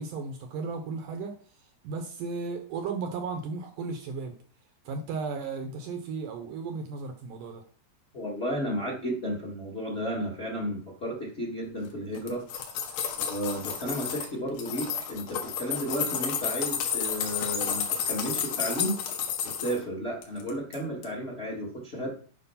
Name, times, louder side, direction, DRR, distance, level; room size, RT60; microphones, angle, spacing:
voice 1, 0.0-1.3 1.6-4.3 4.9-7.6, right 4 dB, 80° right, 6 dB, 1.9 m, -35 dB
voice 2, 8.1-12.5 13.1-19.0 19.4-22.1, equal, 45° left, -2 dB, 0.8 m, -33 dB
sound 1, 12.2-14.3 14.6-19.8 20.2-20.8 21.0-21.1, left 8 dB, 75° left, 3.4 m, -31 dB
9.3 x 4.3 x 5.7 m, 0.43 s
omnidirectional pair, 4.9 m